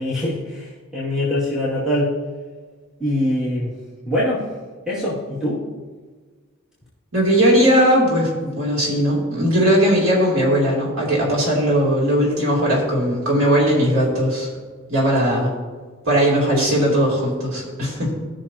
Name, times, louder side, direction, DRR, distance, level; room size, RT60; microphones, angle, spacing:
voice 1, 0.0-2.1 3.0-3.7 4.0-4.5 4.9-5.6, left 1 dB, 5° right, -10 dB, 2.3 m, -23 dB
voice 2, 7.1-14.5 14.9-15.5 16.0-18.1, equal, 80° right, -4 dB, 3.1 m, -18 dB
17.0 x 6.4 x 2.9 m, 1.4 s
head